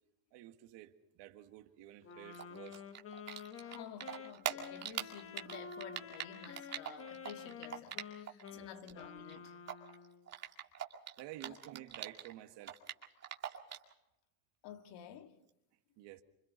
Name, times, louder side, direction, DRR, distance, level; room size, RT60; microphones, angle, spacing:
voice 1, 0.3-2.8 8.5-8.7 11.2-12.8 16.0-16.2, right 14 dB, 55° right, 1.8 m, -51 dB
Wind instrument woodwind instrument, 2.0-10.3, left 6 dB, 25° left, 1.2 m, -50 dB
Typing, 2.3-8.5 8.7-12.3 12.6-13.9, right 9 dB, 30° right, 2.3 m, -42 dB
voice 2, 3.6-9.6 11.4-11.6 14.6-15.4, left 8 dB, 55° left, 2.0 m, -51 dB
27.0 x 25.5 x 4.0 m
supercardioid pair, 130°, 49 cm